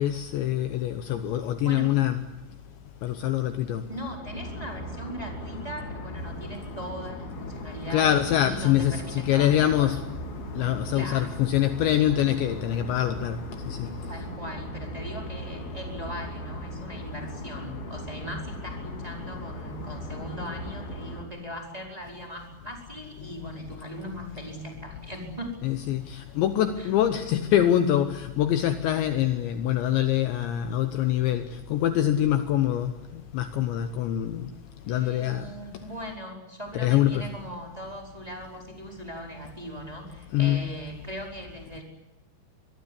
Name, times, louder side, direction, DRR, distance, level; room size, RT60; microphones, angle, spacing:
voice 1, 0.0-2.3 3.0-3.9 7.9-10.1 10.6-13.4 13.7-13.9 25.6-31.4 31.7-34.5 34.9-35.5 36.7-37.3 40.3-40.7, left 11 dB, 75° left, 3.0 m, -24 dB
sound 1, 3.9-21.3, left 1 dB, 50° left, 4.5 m, -38 dB
voice 2, 3.9-10.0 10.9-11.3 14.1-25.5 26.8-26.9 34.8-41.8, equal, 10° right, 4.4 m, -39 dB
24.5 x 22.0 x 8.5 m
omnidirectional pair, 5.9 m